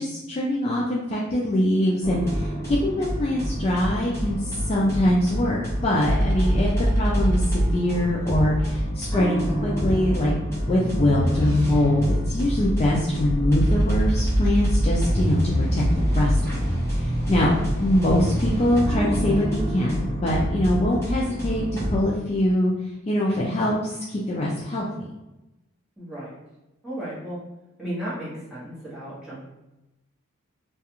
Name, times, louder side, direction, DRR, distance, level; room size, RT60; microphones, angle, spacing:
voice 1, 0.0-6.7 7.0-10.3 10.7-16.5 16.9-21.6 21.9-22.7 23.1-24.9, left 1 dB, 30° left, -5 dB, 0.3 m, -23 dB
sound 1, 2.0-22.0, equal, 10° left, 0.7 m, -25 dB
voice 2, 26.0-26.3 26.8-27.4 27.8-29.4, right 1 dB, 5° right, -10 dB, 1.0 m, -34 dB
2.4 x 2.3 x 2.9 m, 0.98 s
head